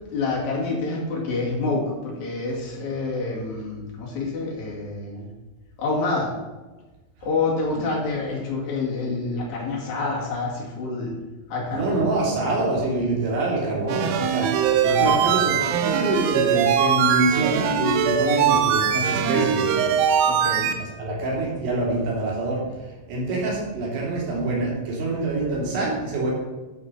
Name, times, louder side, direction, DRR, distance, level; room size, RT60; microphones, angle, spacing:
voice 1, 0.1-5.3 5.8-6.3 7.2-11.2 11.5-12.1 14.8-15.2 20.2-20.7, left 3 dB, 45° left, -3 dB, 2.9 m, -27 dB
voice 2, 11.7-14.5 14.8-19.9 21.0-22.6 23.1-26.3, right 2 dB, 60° right, -4 dB, 4.8 m, -25 dB
sound 1, 13.9-20.7, right 8 dB, 90° right, 3.5 m, -21 dB
13.0 x 5.3 x 5.6 m, 1.2 s
omnidirectional pair, 5.9 m